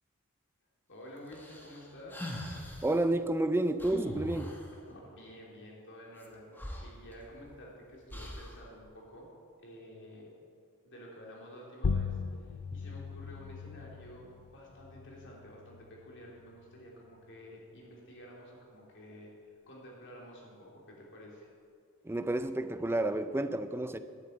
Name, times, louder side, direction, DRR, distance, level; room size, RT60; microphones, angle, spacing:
voice 1, 0.9-2.3 4.9-9.3 9.6-10.3 10.8-21.5, equal, 55° left, -3 dB, 3.1 m, -51 dB
sound 1, 1.3-2.9 3.8-4.7 6.2-6.3 6.6-7.6 8.1-8.6, left 1 dB, 10° left, 1.3 m, -41 dB
voice 2, 2.8-4.5 22.0-24.0, right 1 dB, 10° right, 10 dB, 0.4 m, -30 dB
sound 2, 11.8-16.9, left 5 dB, 85° left, 0.5 m, -38 dB
12.0 x 7.6 x 8.0 m, 2.2 s
head